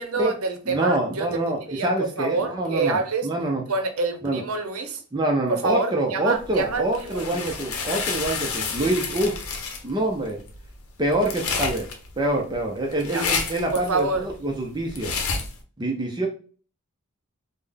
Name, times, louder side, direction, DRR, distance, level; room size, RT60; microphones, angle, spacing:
voice 1, 0.0-3.3 3.7-5.0 5.5-7.5 13.1-13.2 13.7-14.3, right 4 dB, 80° right, 0.6 m, -27 dB
voice 2, 0.7-3.6 4.2-4.4 5.1-9.3 9.8-10.4 11.0-11.8 12.2-15.1 15.8-16.3, right 1 dB, 20° right, 0.4 m, -25 dB
sound 1, 6.4-15.6, left 5 dB, 85° left, 0.7 m, -30 dB
3.7 x 2.1 x 3.3 m
head